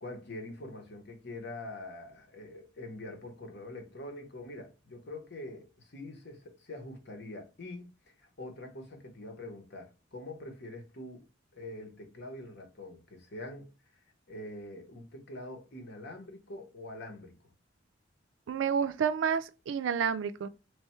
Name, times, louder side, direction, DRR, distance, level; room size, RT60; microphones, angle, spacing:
voice 1, 0.0-11.2 11.5-13.7 14.3-17.3, left 1 dB, 55° left, 1.0 m, -44 dB
voice 2, 18.5-20.5, right 7 dB, 70° right, 0.3 m, -29 dB
3.3 x 2.3 x 4.3 m
head